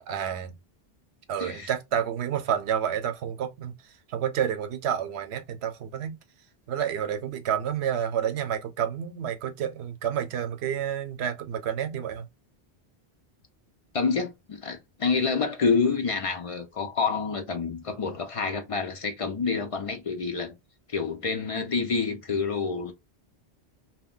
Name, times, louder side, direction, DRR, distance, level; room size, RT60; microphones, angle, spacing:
voice 1, 0.1-0.5 1.3-6.2 6.7-12.3, right 9 dB, 85° right, 0.8 m, -29 dB
voice 2, 1.4-1.7 13.9-20.5 20.9-22.9, left 5 dB, 60° left, 0.3 m, -28 dB
2.3 x 2.1 x 3.6 m
omnidirectional pair, 1.1 m